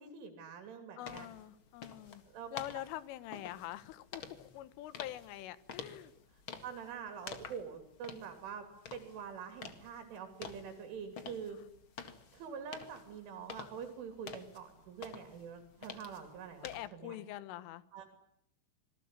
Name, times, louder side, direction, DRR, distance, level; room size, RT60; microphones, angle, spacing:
voice 1, 0.0-1.3 2.3-2.5 6.6-8.7 8.9-11.6 12.3-16.7 16.9-17.2 17.9-18.1, right 7 dB, 75° right, 7 dB, 5.3 m, -45 dB
voice 2, 1.0-2.2 2.5-6.1 16.6-17.8, left 14 dB, 85° left, 16 dB, 3.8 m, -45 dB
sound 1, 1.1-16.9, left 5 dB, 55° left, 1.4 m, -50 dB
27.0 x 20.5 x 9.9 m, 0.78 s
omnidirectional pair, 5.6 m